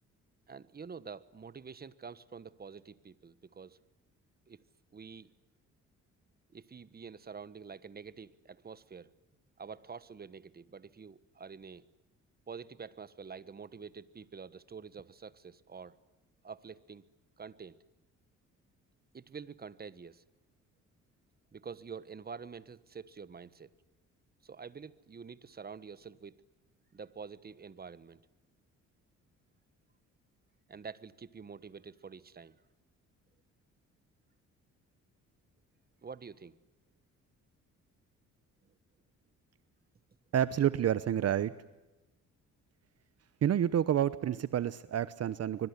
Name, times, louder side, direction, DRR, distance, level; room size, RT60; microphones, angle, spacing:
voice 1, 0.5-3.8 4.5-4.6 4.9-5.3 6.5-9.1 9.6-11.8 12.5-16.0 16.4-17.0 17.4-17.8 19.1-20.2 21.5-23.7 24.4-26.4 26.9-28.2 30.7-32.6 36.0-36.6, right 5 dB, 30° right, 16 dB, 1.3 m, -47 dB
voice 2, 40.3-41.5 43.4-45.7, right 10 dB, 55° right, 15 dB, 0.9 m, -29 dB
24.5 x 23.5 x 9.8 m, 1.1 s
cardioid pair, 90°, 30 cm